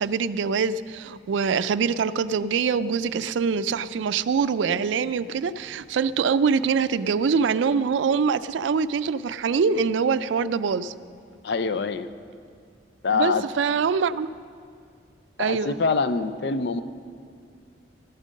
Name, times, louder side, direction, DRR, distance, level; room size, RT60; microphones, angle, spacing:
voice 1, 0.0-10.9 13.1-14.3 15.4-15.8, right 5 dB, 85° right, 15 dB, 0.4 m, -24 dB
voice 2, 11.4-12.1 13.0-13.5 15.4-16.8, left 4 dB, 65° left, 12 dB, 0.5 m, -25 dB
12.5 x 9.0 x 6.4 m, 2.2 s
head